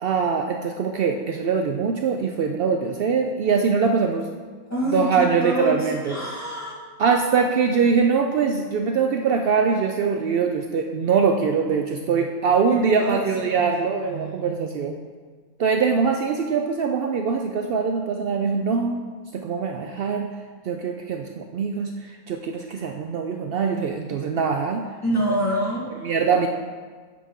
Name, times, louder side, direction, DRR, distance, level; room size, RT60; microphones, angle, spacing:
voice 1, 0.0-4.3 4.9-6.2 7.0-15.0 15.6-19.0 19.3-20.3 20.7-24.8 26.0-26.5, right 5 dB, 80° right, 4 dB, 0.5 m, -23 dB
voice 2, 4.7-6.7 12.7-13.7 25.0-26.0, right 1 dB, 10° left, -6 dB, 1.7 m, -26 dB
9.2 x 6.0 x 3.6 m, 1.5 s
omnidirectional pair, 1.5 m